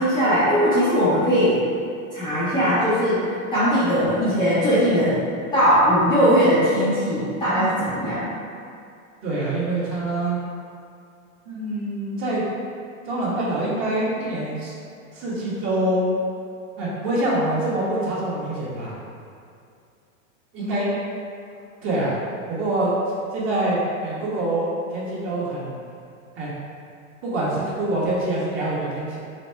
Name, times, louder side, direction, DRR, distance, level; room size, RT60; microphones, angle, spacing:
voice 1, 0.0-1.6 2.1-3.2 3.5-5.2 5.5-8.3, equal, 10° left, -13 dB, 0.6 m, -19 dB
voice 2, 9.2-10.4 11.5-12.4 13.0-14.7 15.1-16.1 16.8-19.0 20.5-20.9 21.8-22.2 22.5-25.8 26.4-26.5 27.2-29.2, right 1 dB, 30° right, -7 dB, 1.1 m, -25 dB
4.2 x 2.1 x 4.3 m, 2.4 s
supercardioid pair, 145°, 41 cm